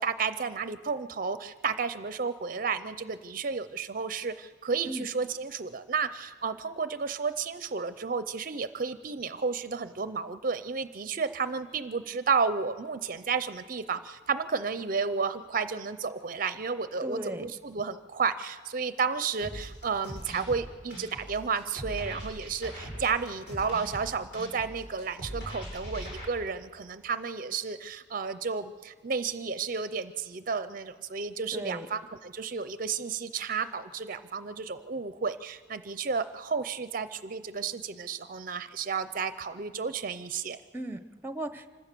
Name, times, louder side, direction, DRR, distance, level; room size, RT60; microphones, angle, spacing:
voice 1, 0.0-40.6, right 5 dB, 45° right, 12 dB, 0.5 m, -32 dB
voice 2, 17.0-17.4 31.5-31.9 40.7-41.7, right 1 dB, 10° right, 10 dB, 0.7 m, -36 dB
sound 1, 19.4-26.3, equal, 60° left, 6.5 m, -41 dB
26.0 x 15.0 x 6.7 m, 1.5 s
head